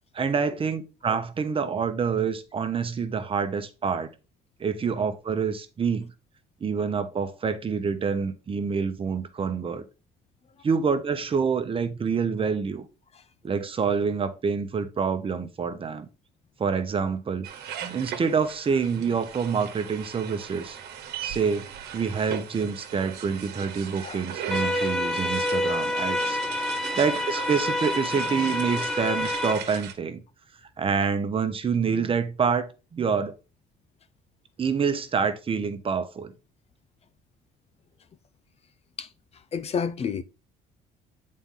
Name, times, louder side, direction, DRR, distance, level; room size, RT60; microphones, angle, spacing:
voice 1, 0.1-4.1 4.6-6.1 6.6-9.8 10.6-12.9 13.4-16.1 16.6-17.5 17.8-20.8 21.2-30.2 30.8-33.4 34.6-36.3, right 6 dB, 30° right, 0.9 m, -27 dB
sound 1, 17.4-29.9, right 9 dB, 75° right, 1.2 m, -38 dB
sound 2, 24.5-29.5, left 1 dB, 5° left, 0.9 m, -28 dB
voice 2, 39.5-40.2, left 6 dB, 40° left, 0.5 m, -30 dB
8.0 x 4.3 x 3.8 m
cardioid pair, 110°, 17 cm